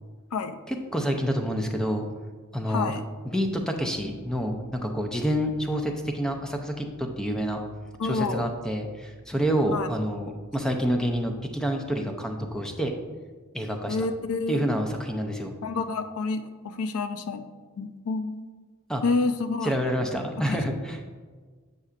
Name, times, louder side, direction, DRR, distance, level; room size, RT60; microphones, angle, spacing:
voice 1, 0.7-2.1 2.5-2.9 3.2-7.6 8.0-12.9 13.5-14.1 14.5-15.5 18.9-19.0 19.6-21.1, equal, 5° left, 3 dB, 0.5 m, -28 dB
voice 2, 2.7-3.1 8.0-8.5 9.7-9.9 13.9-14.6 15.6-17.4 17.8-18.4 19.0-19.8 20.5-20.6, left 4 dB, 75° left, 10 dB, 0.4 m, -28 dB
7.9 x 5.4 x 2.4 m, 1.5 s
head